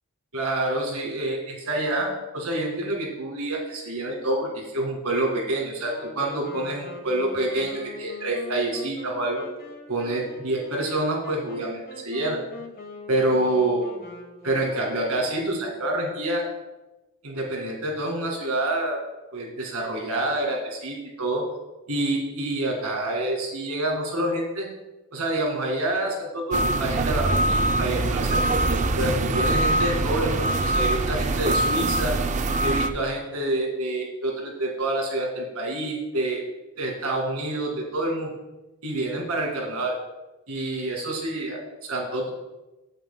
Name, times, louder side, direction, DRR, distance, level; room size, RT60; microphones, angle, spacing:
voice 1, 0.3-9.5 9.9-12.4 13.1-13.9 14.4-16.4 17.2-19.0 19.3-21.4 21.9-24.7 25.1-28.4 28.9-32.1 32.6-36.4 36.8-38.3 38.8-40.0 40.5-42.3, right 1 dB, 90° right, 0 dB, 2.1 m, -27 dB
Wind instrument woodwind instrument, 5.8-15.7, left 2 dB, 40° left, 1.3 m, -43 dB
sound 1, 26.5-32.9, right 2 dB, 35° right, 0.4 m, -23 dB
15.0 x 6.6 x 2.2 m, 1.1 s
head